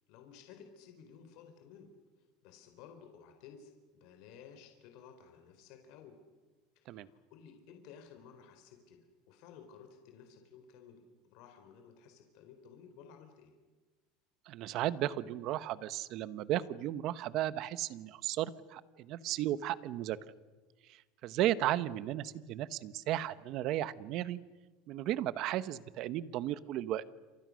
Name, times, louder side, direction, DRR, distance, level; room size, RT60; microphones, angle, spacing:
voice 1, 0.1-1.9 2.4-6.2 6.8-13.5, left 7 dB, 60° left, 5 dB, 3.8 m, -55 dB
voice 2, 14.5-20.2 20.9-24.4 24.9-27.0, right 13 dB, 50° right, 16 dB, 1.1 m, -35 dB
29.0 x 27.0 x 6.4 m, 1.3 s
supercardioid pair, 145°, 0 cm